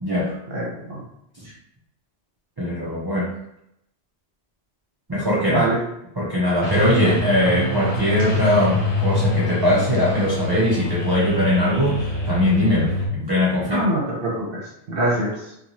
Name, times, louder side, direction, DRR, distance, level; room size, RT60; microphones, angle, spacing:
voice 1, 0.0-0.4 1.4-1.5 2.6-3.3 5.1-5.7 6.2-13.8, left 1 dB, 35° right, -6 dB, 0.4 m, -21 dB
voice 2, 0.5-1.0 5.5-5.8 13.7-14.6 14.9-15.3, right 2 dB, 60° right, -4 dB, 0.9 m, -23 dB
sound 1, 6.6-13.1, left 2 dB, 60° left, 0.9 m, -24 dB
2.6 x 2.3 x 3.0 m, 0.78 s
omnidirectional pair, 1.1 m